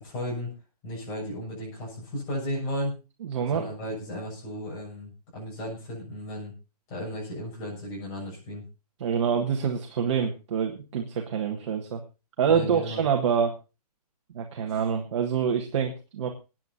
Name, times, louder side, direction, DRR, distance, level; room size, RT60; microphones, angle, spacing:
voice 1, 0.0-0.5 0.8-2.9 3.5-6.5 6.9-8.6 12.5-13.0 14.7-14.8, equal, 25° left, -5 dB, 7.0 m, -34 dB
voice 2, 3.2-3.7 9.0-12.0 12.4-13.5 14.3-16.3, right 7 dB, 45° right, 2 dB, 1.7 m, -26 dB
27.0 x 9.2 x 2.8 m, 0.30 s
hypercardioid pair, 165°, 20 cm